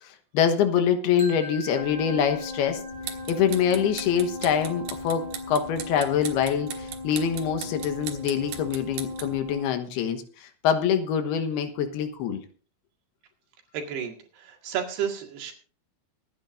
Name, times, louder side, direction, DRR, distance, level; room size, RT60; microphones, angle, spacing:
voice 1, 0.0-2.8 3.3-12.4, left 8 dB, 90° left, 7 dB, 3.2 m, -25 dB
sound 1, 1.2-7.1, left 1 dB, 15° right, 4.3 m, -46 dB
sound 2, 1.7-9.6, left 3 dB, 25° left, 4.8 m, -38 dB
sound 3, 2.9-9.4, right 9 dB, 65° right, 2.7 m, -40 dB
voice 2, 13.7-15.5, right 8 dB, 85° right, 2 dB, 4.0 m, -32 dB
24.0 x 9.9 x 2.6 m, 0.41 s
omnidirectional pair, 4.5 m